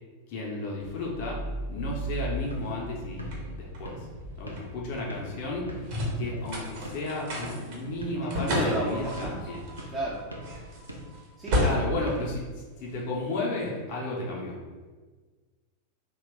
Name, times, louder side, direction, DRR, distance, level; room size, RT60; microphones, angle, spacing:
voice 1, 0.3-1.4 1.7-4.1 4.4-9.6 11.6-14.6, left 2 dB, 45° left, -3 dB, 0.6 m, -33 dB
sound 1, 0.8-13.2, equal, 45° right, 0.8 m, -34 dB
sound 2, 2.3-13.0, equal, 85° right, 0.5 m, -45 dB
voice 2, 8.3-9.5 9.9-10.2 11.4-11.7, right 1 dB, 20° right, -5 dB, 0.4 m, -32 dB
2.8 x 2.2 x 3.2 m, 1.4 s
figure-of-eight pair, 90°, 0 cm